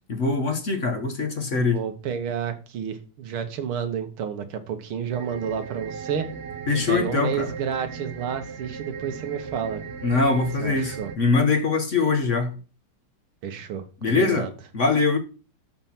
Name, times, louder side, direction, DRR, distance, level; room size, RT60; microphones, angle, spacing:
voice 1, 0.1-1.8 6.7-7.5 10.0-12.6 14.0-15.2, left 4 dB, 40° left, 1.3 m, -23 dB
voice 2, 1.5-6.3 6.9-9.8 10.6-11.1 13.4-14.5, right 8 dB, 80° right, 2.0 m, -30 dB
sound 1, 5.1-11.2, right 6 dB, 40° right, 1.0 m, -37 dB
6.8 x 5.7 x 7.4 m
omnidirectional pair, 2.3 m